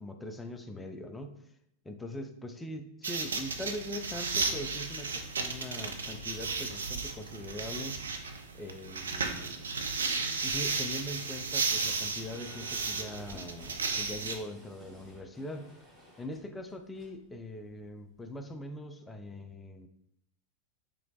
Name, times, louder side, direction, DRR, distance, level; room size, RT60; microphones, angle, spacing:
voice 1, 0.0-1.5 1.8-8.0 8.5-9.7 10.4-15.7 16.2-19.9, left 1 dB, 10° left, 6 dB, 0.3 m, -42 dB
sound 1, 3.0-14.4, right 4 dB, 70° right, 0.3 m, -34 dB
sound 2, 10.8-18.5, left 1 dB, 15° right, 0.9 m, -55 dB
3.0 x 3.0 x 2.7 m, 0.77 s
figure-of-eight pair, 90°, 0 cm